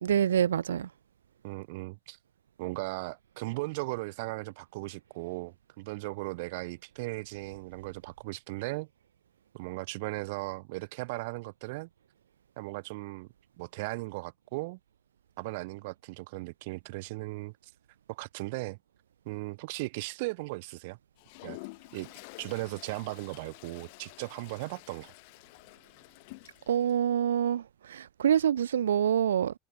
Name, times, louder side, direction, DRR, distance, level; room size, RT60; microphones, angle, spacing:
voice 1, 0.0-0.9 26.7-29.5, right 9 dB, 85° right, 0.5 m, -26 dB
voice 2, 1.4-2.2 2.6-8.9 9.5-11.9 12.6-13.3 13.6-14.8 15.4-17.7 18.1-18.8 19.2-21.0 21.4-21.6 21.9-22.1 22.4-25.1, right 24 dB, 65° right, 1.7 m, -37 dB
Toilet flush, 21.2-27.0, left 29 dB, 65° left, 2.0 m, -49 dB
hypercardioid pair, 85°, 0 cm